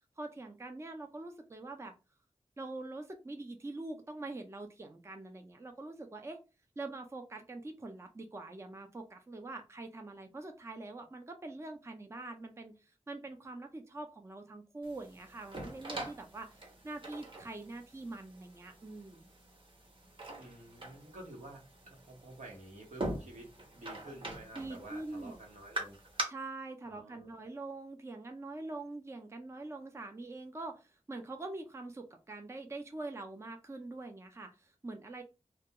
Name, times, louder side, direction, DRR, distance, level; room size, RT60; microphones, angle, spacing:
voice 1, 0.2-1.9 2.6-6.4 6.8-16.6 16.8-19.2 24.5-25.4 26.3-35.2, right 2 dB, 25° right, 5 dB, 0.4 m, -44 dB
sound 1, 14.8-26.2, right 1 dB, 45° right, 0.8 m, -44 dB
voice 2, 20.4-26.0 26.8-27.4, right 1 dB, 90° right, -1 dB, 1.0 m, -50 dB
2.2 x 2.2 x 2.8 m, 0.29 s
wide cardioid pair, 65°, 12 cm